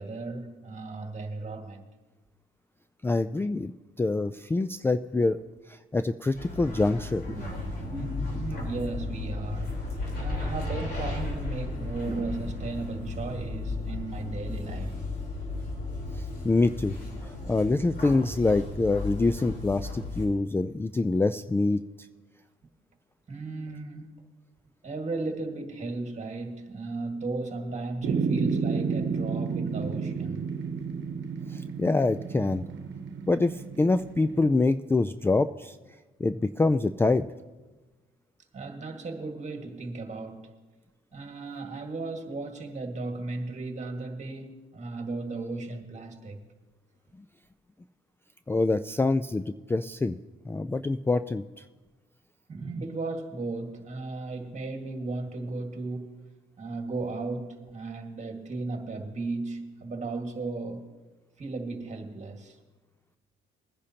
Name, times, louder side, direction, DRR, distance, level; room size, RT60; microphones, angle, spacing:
voice 1, 0.0-1.8 8.3-9.8 10.2-15.0 23.3-24.1 24.8-30.5 38.5-40.5 41.1-46.4 52.5-56.2 56.6-60.9 61.4-62.6, right 3 dB, 35° right, 1.8 m, -35 dB
voice 2, 3.0-3.7 4.0-5.4 5.7-7.2 16.1-21.8 31.5-32.6 33.3-35.8 36.2-37.3 48.5-50.2 50.5-51.6, left 3 dB, 10° left, 0.3 m, -25 dB
sound 1, 6.3-20.3, left 2 dB, 55° left, 3.9 m, -34 dB
sound 2, 28.0-34.5, right 5 dB, 70° right, 1.0 m, -31 dB
21.5 x 10.0 x 2.9 m
cardioid pair, 90°, 20 cm